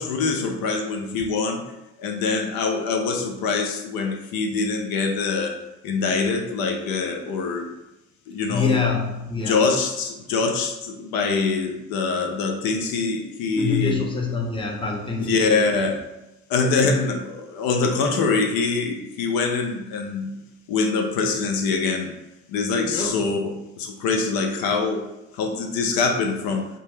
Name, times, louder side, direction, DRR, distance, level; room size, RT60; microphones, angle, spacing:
voice 1, 0.0-1.6 2.0-5.5 5.8-7.7 8.3-8.8 9.4-13.9 15.3-16.0 16.5-20.3 20.7-22.1 22.5-25.1 25.3-26.7, left 4 dB, 80° left, 3 dB, 0.5 m, -24 dB
voice 2, 8.5-9.6 13.6-15.9 22.8-23.2, left 4 dB, 15° left, 0 dB, 0.6 m, -26 dB
2.7 x 2.2 x 3.1 m, 0.95 s
cardioid pair, 80°, 35 cm